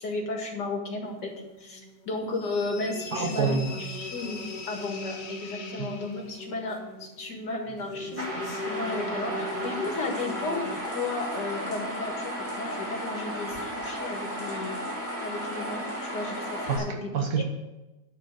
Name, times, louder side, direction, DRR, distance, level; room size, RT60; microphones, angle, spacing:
voice 1, 0.0-1.3 1.6-4.4 4.7-14.8 15.2-17.1, left 3 dB, 70° left, 1 dB, 2.4 m, -34 dB
sound 1, 1.0-2.5 2.8-10.8, left 2 dB, 35° left, 0.8 m, -40 dB
sound 2, 2.3-6.5, left 4 dB, 90° left, 1.8 m, -42 dB
voice 2, 3.1-3.8 5.8-5.9 16.7-17.4, right 5 dB, 60° right, 3 dB, 1.6 m, -27 dB
sound 3, 8.2-16.8, equal, 10° right, 2.2 m, -34 dB
10.5 x 4.4 x 8.0 m, 1.1 s
omnidirectional pair, 1.9 m